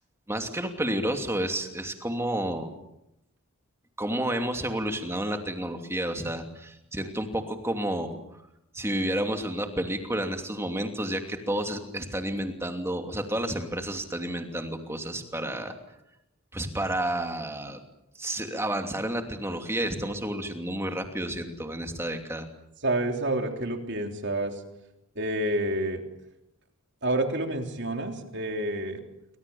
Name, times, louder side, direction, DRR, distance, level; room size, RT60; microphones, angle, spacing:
voice 1, 0.3-2.7 4.0-8.2 8.7-15.7 16.5-17.8 18.2-22.5, right 1 dB, 10° right, 5 dB, 2.7 m, -30 dB
voice 2, 22.8-24.6 25.2-26.0 27.0-29.0, right 1 dB, 50° right, 4 dB, 3.5 m, -28 dB
28.0 x 25.0 x 7.2 m, 0.86 s
head